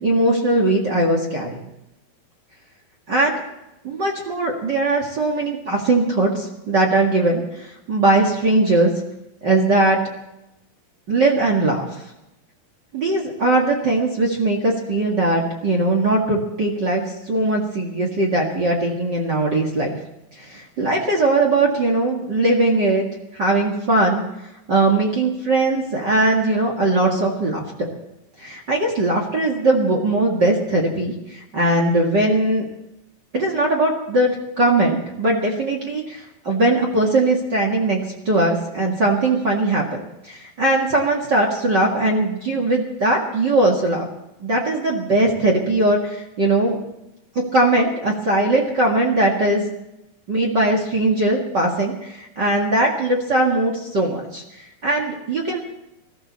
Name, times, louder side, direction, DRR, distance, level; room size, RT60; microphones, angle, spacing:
voice 1, 0.0-1.6 3.1-3.4 3.8-8.9 9.4-10.0 11.1-11.9 12.9-20.0 20.4-23.0 23.3-24.2 24.7-27.6 28.4-32.7 33.3-44.0 44.4-46.8 47.5-49.7 50.3-54.4 54.8-55.6, right 2 dB, 50° right, 0 dB, 1.2 m, -20 dB
20.0 x 14.0 x 4.2 m, 0.90 s
omnidirectional pair, 4.9 m